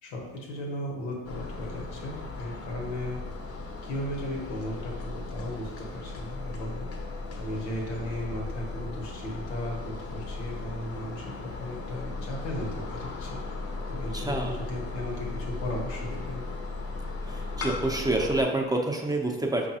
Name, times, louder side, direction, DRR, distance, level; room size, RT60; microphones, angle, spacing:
voice 1, 0.0-3.2 3.8-6.9 7.4-13.4 13.9-16.4, left 1 dB, 85° left, -1 dB, 0.9 m, -36 dB
sound 1, 1.2-18.4, left 3 dB, 45° left, 0.6 m, -37 dB
voice 2, 14.1-14.6 17.2-19.7, right 2 dB, 10° right, 0 dB, 0.6 m, -28 dB
5.1 x 2.3 x 2.8 m, 1.2 s
hypercardioid pair, 60°, 33 cm